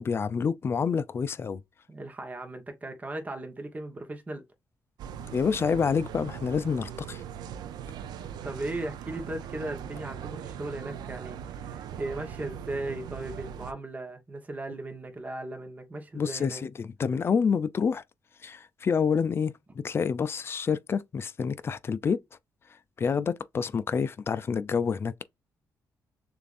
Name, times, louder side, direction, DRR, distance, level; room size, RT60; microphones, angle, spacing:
voice 1, 0.0-1.6 5.3-7.2 16.1-18.0 18.4-22.2 23.0-25.2, left 6 dB, 35° left, 0.4 m, -28 dB
voice 2, 1.9-4.4 8.4-16.6, right 2 dB, 20° right, 0.9 m, -37 dB
sound 1, 5.0-13.7, right 8 dB, 85° right, 0.4 m, -40 dB
6.6 x 2.5 x 2.4 m
cardioid pair, 120°, 7 cm